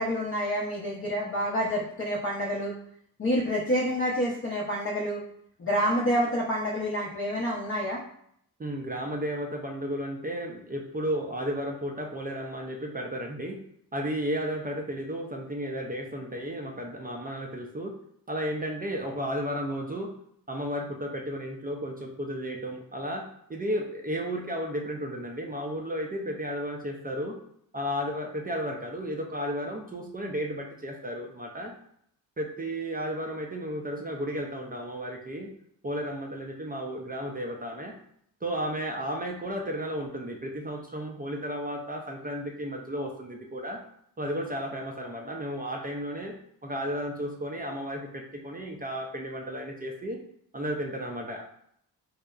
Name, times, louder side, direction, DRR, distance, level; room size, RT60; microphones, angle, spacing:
voice 1, 0.0-2.7 3.2-5.2 5.6-8.0, equal, 30° left, -4 dB, 0.6 m, -28 dB
voice 2, 8.6-13.6 13.9-17.9 18.3-20.1 20.5-27.4 27.7-31.7 32.4-35.5 35.8-37.9 38.4-43.8 44.2-46.3 46.6-50.2 50.5-51.4, equal, 20° right, 1 dB, 0.4 m, -33 dB
2.7 x 2.0 x 2.3 m, 0.69 s
supercardioid pair, 50°, 43 cm